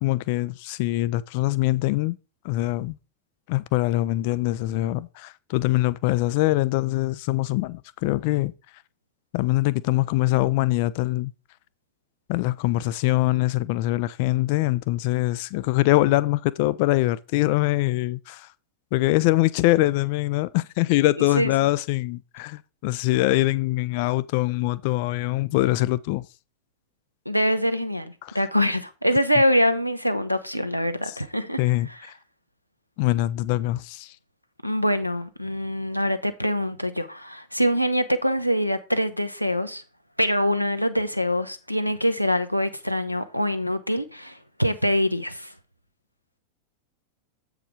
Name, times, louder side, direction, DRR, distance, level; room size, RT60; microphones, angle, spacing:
voice 1, 0.0-2.2 2.4-3.0 3.5-8.5 9.3-11.3 12.3-18.5 18.9-26.3 28.2-28.4 31.1-31.2 31.6-31.9 33.0-34.1, left 18 dB, 45° left, 0.4 m, -23 dB
voice 2, 27.3-31.6 34.6-39.8 40.2-45.5, equal, 90° left, 0.7 m, -24 dB
7.9 x 4.9 x 4.9 m
figure-of-eight pair, 90°, 0 cm